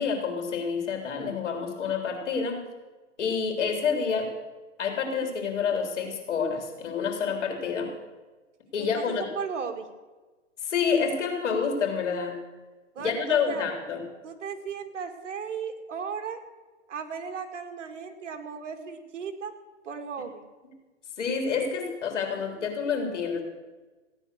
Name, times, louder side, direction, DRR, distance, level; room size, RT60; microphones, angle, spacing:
voice 1, 0.0-2.6 3.2-4.3 4.8-7.9 8.7-9.3 10.6-12.4 13.0-14.0 21.2-23.4, left 6 dB, 65° left, 5 dB, 3.8 m, -28 dB
voice 2, 9.3-9.9 13.0-13.7 14.2-16.4 16.9-19.5 19.8-20.4, right 6 dB, 65° right, 5 dB, 2.2 m, -36 dB
16.0 x 9.9 x 6.5 m, 1.3 s
hypercardioid pair, 160°, 38 cm